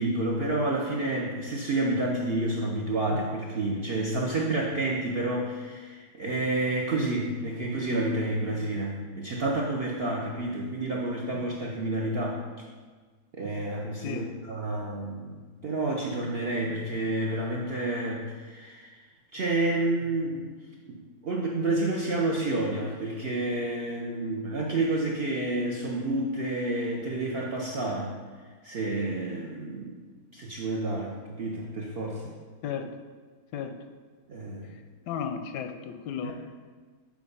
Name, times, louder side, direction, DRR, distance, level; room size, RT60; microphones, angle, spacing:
voice 1, 0.0-12.4 13.3-19.0 19.3-20.6 20.9-28.1 28.6-30.0 30.3-32.3 34.3-34.7 36.2-36.3, right 2 dB, 60° right, -2 dB, 0.6 m, -29 dB
voice 2, 14.0-14.3 32.6-32.9 33.5-33.8 35.1-36.3, left 7 dB, 85° left, 8 dB, 1.2 m, -34 dB
6.3 x 3.5 x 5.3 m, 1.5 s
omnidirectional pair, 1.7 m